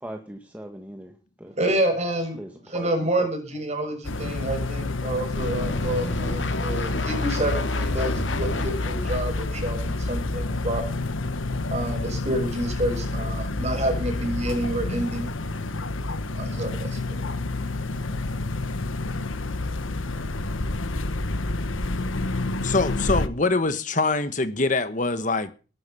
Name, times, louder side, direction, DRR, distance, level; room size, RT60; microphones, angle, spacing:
voice 1, 0.0-1.5 2.4-3.3, right 1 dB, 10° right, 1.8 m, -39 dB
voice 2, 1.5-2.4 2.6-10.8 11.4-18.4, right 1 dB, 35° right, 6.7 m, -29 dB
sound 1, 4.0-23.3, left 2 dB, 90° left, 1.4 m, -28 dB
sound 2, 5.3-10.2 10.7-10.8, left 2 dB, 70° left, 2.6 m, -32 dB
voice 3, 22.6-25.5, left 3 dB, 40° left, 1.3 m, -24 dB
20.0 x 11.5 x 5.7 m
head